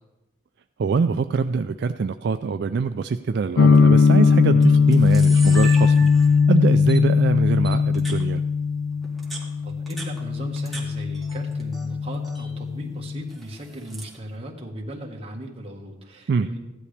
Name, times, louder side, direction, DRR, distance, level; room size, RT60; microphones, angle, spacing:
voice 1, 0.8-8.4 16.3-16.5, right 5 dB, 60° right, 9 dB, 0.3 m, -24 dB
sound 1, 3.6-13.3, left 5 dB, 75° left, 0.4 m, -19 dB
Camera, 3.7-4.0 4.6-4.7 4.9-6.5 6.9-7.0 7.6-8.2 9.0-10.8 11.1-11.9 12.1-12.5 13.3-14.2, right 3 dB, ahead, 1.7 m, -37 dB
voice 2, 9.6-16.6, right 1 dB, 30° right, 0 dB, 1.5 m, -37 dB
15.0 x 11.0 x 3.4 m, 1.0 s
head